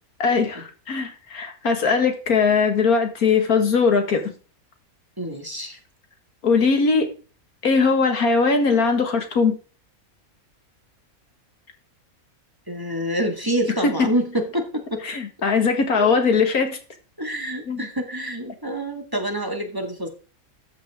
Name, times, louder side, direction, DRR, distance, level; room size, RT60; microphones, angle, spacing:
voice 1, 0.2-4.2 6.4-7.1 7.6-9.6 15.0-16.8 17.7-17.9, left 5 dB, 90° left, 6 dB, 2.3 m, -20 dB
voice 2, 5.2-5.8 12.7-15.0 15.9-16.1 17.2-20.1, right 1 dB, 15° right, 4 dB, 1.9 m, -27 dB
13.5 x 8.9 x 3.6 m, 0.35 s
omnidirectional pair, 1.5 m